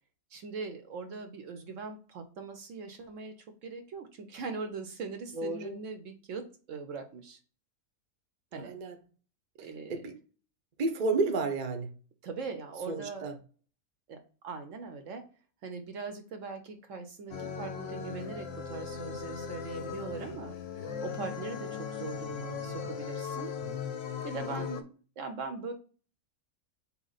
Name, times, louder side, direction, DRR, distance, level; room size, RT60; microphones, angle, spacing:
voice 1, 0.3-7.4 8.5-8.7 9.6-10.0 12.2-13.4 14.1-14.2 14.4-15.3 15.6-20.6 21.0-23.5 24.2-24.9 25.2-25.7, right 4 dB, 65° right, 0.9 m, -41 dB
voice 2, 5.3-5.8 8.6-9.0 9.6-10.2 10.8-11.9 12.9-13.4 24.6-24.7, right 3 dB, 40° right, 0.6 m, -32 dB
sound 1, 17.3-24.8, left 6 dB, 55° left, 0.8 m, -38 dB
4.3 x 3.0 x 3.9 m
omnidirectional pair, 1.5 m